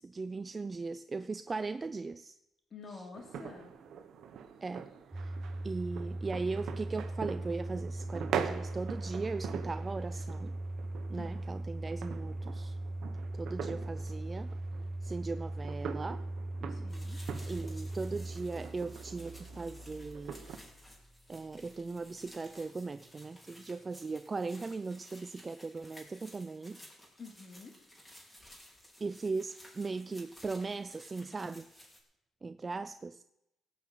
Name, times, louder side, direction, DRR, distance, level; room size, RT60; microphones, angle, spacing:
voice 1, 0.0-2.4 2.9-3.0 4.6-4.9 5.1-5.3 5.6-10.5 11.1-12.8 13.3-14.5 15.0-16.3 17.0-20.4 21.3-26.8 29.0-31.7 32.4-33.2, right 3 dB, 30° right, 0.5 m, -38 dB
voice 2, 2.7-3.7 11.1-11.4 16.7-17.2 27.2-27.8, left 4 dB, 45° left, 3.3 m, -48 dB
sound 1, 3.1-20.6, right 7 dB, 70° right, 1.3 m, -43 dB
Domestic sounds home sounds, 5.1-22.0, right 1 dB, 10° right, 0.9 m, -40 dB
sound 2, 16.9-32.0, equal, 10° left, 4.0 m, -56 dB
17.5 x 5.9 x 8.5 m
cardioid pair, 90°, 0 cm